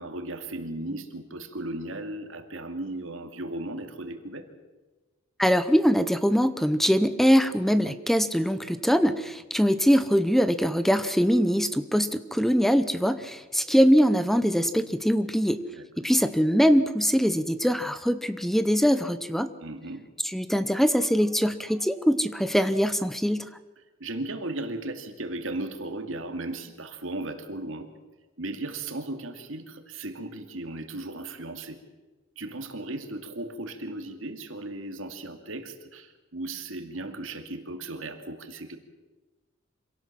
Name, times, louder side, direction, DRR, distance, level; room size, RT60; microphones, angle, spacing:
voice 1, 0.0-4.5 15.7-16.1 19.6-20.1 24.0-27.9 28.4-31.8 32.4-38.8, right 2 dB, 85° right, 7 dB, 2.5 m, -36 dB
voice 2, 5.4-15.6 16.0-19.5 20.2-23.5, equal, ahead, 12 dB, 0.8 m, -22 dB
26.0 x 17.5 x 7.5 m, 1.2 s
head